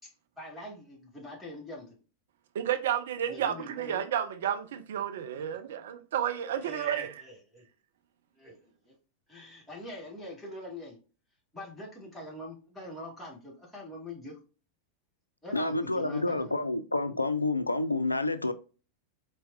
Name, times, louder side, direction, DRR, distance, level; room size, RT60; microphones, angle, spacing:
voice 1, 0.0-2.0 3.3-4.0 6.6-7.6 8.4-8.9 9.3-11.0 11.5-14.4 15.4-16.5, left 1 dB, 5° left, 2.1 m, -44 dB
voice 2, 2.5-7.2, right 10 dB, 60° right, 0.4 m, -31 dB
voice 3, 15.5-18.5, left 2 dB, 85° left, 0.3 m, -29 dB
4.4 x 3.2 x 2.6 m
figure-of-eight pair, 90°, 0 cm